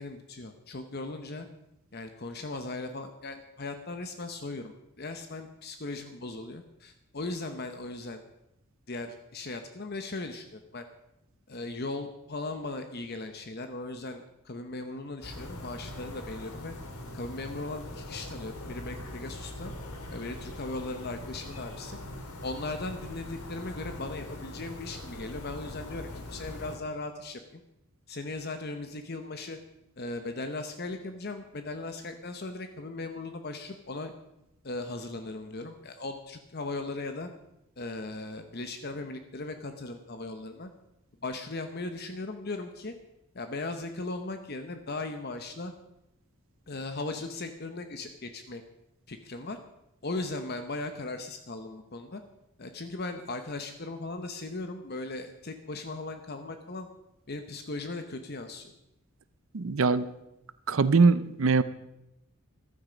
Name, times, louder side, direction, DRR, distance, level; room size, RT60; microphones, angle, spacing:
voice 1, 0.0-1.5 1.9-8.2 8.9-10.9 11.5-16.7 17.1-19.7 20.1-22.0 22.4-27.6 28.1-29.6 30.0-34.1 34.6-37.3 37.8-40.7 41.2-42.9 43.3-45.7 46.7-48.6 49.1-49.6 50.0-52.2 52.6-56.9 57.3-58.7, left 2 dB, 45° left, 7 dB, 0.9 m, -38 dB
sound 1, 15.2-26.8, left 1 dB, 80° left, 2.3 m, -42 dB
voice 2, 59.5-60.1 60.7-61.6, right 4 dB, 65° right, 14 dB, 0.6 m, -22 dB
15.0 x 12.0 x 5.2 m, 0.88 s
head